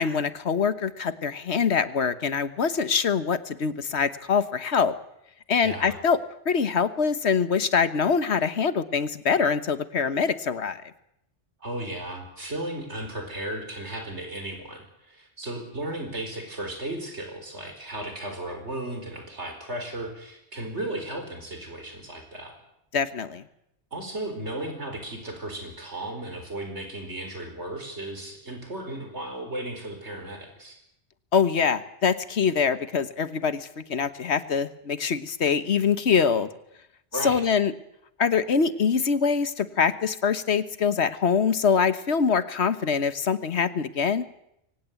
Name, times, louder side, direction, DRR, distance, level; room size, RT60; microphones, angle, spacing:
voice 1, 0.0-4.9 5.5-6.2 6.4-10.8 22.9-23.4 31.3-36.5 37.2-37.7 38.2-44.2, left 6 dB, 75° left, 14 dB, 1.5 m, -24 dB
voice 2, 5.6-6.0 11.6-22.5 23.9-30.8 37.1-37.4, right 1 dB, 85° right, 4 dB, 4.9 m, -35 dB
23.5 x 18.0 x 8.3 m, 0.79 s
omnidirectional pair, 1.1 m